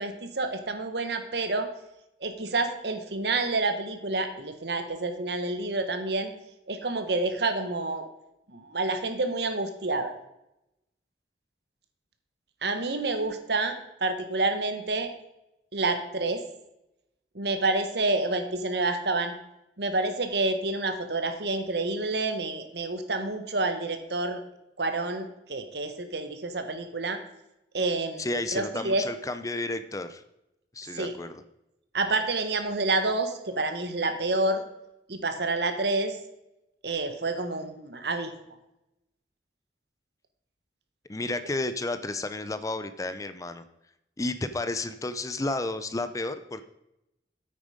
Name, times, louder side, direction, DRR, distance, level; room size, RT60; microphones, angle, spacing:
voice 1, 0.0-1.7 2.2-6.3 6.7-8.1 8.5-10.1 12.6-15.1 15.7-16.4 17.3-19.3 19.8-24.4 24.8-27.2 27.7-29.0 30.9-31.1 31.9-34.6 35.1-36.2 36.8-38.3, right 2 dB, 70° right, 8 dB, 1.3 m, -28 dB
voice 2, 28.2-30.2 30.7-31.4 41.1-43.6 44.2-46.6, left 2 dB, 20° left, 11 dB, 0.5 m, -32 dB
9.1 x 8.7 x 5.0 m, 0.87 s
head